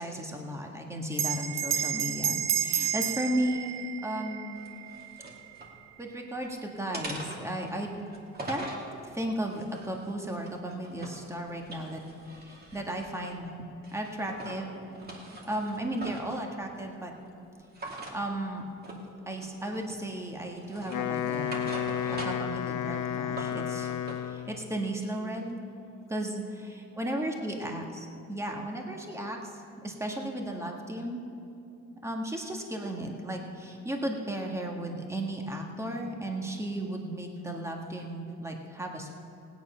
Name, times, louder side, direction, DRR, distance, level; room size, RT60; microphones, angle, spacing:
voice 1, 0.0-3.7 4.0-4.6 6.0-7.9 8.4-8.7 9.1-12.0 12.3-13.5 13.9-14.7 15.0-15.2 15.4-17.1 18.1-18.7 19.3-21.6 22.1-23.9 24.2-25.6 26.1-29.5 29.8-31.2 32.0-39.2, right 1 dB, 10° right, 1 dB, 1.7 m, -35 dB
Bell, 1.1-6.0, right 9 dB, 60° right, 0.7 m, -32 dB
sound 1, 4.6-5.7 6.2-6.5 6.9-8.9 9.5-11.3 11.6-13.4 13.8-14.6 14.9-16.4 17.7-18.2 18.8-19.1 19.4-20.1 20.6-22.6 22.9-24.2, right 1 dB, 30° right, 2.5 m, -42 dB
Wind instrument woodwind instrument, 20.8-24.6, left 9 dB, 75° left, 0.9 m, -32 dB
17.0 x 9.6 x 5.7 m, 2.6 s
cardioid pair, 90°, 30 cm